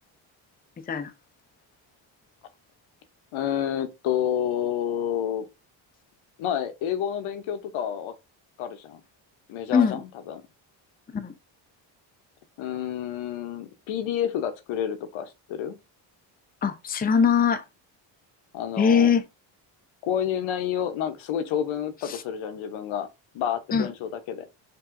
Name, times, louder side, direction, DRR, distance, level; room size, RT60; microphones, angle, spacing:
voice 1, 3.3-5.4 6.4-8.1 8.6-9.0 9.5-10.4 12.6-15.8 18.5-19.1 20.0-23.1 23.3-24.5, left 9 dB, 70° left, 0.9 m, -29 dB
voice 2, 9.7-10.0 11.1-11.3 16.6-17.6 18.8-19.2 22.1-22.2 23.7-23.9, left 6 dB, 20° left, 0.6 m, -21 dB
4.8 x 2.8 x 2.5 m
supercardioid pair, 75°, 49 cm